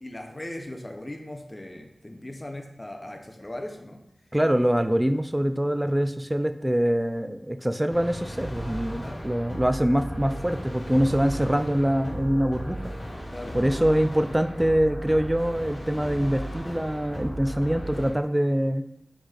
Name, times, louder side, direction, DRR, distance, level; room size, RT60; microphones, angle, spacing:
voice 1, 0.0-4.0 9.0-9.3 13.3-13.6, left 1 dB, 25° left, 4 dB, 0.6 m, -39 dB
voice 2, 4.3-12.8 13.5-18.9, equal, 15° right, 9 dB, 0.3 m, -24 dB
sound 1, 7.9-18.1, equal, 70° left, 1.4 m, -36 dB
4.8 x 4.0 x 2.4 m, 0.75 s
wide cardioid pair, 70°, 0 cm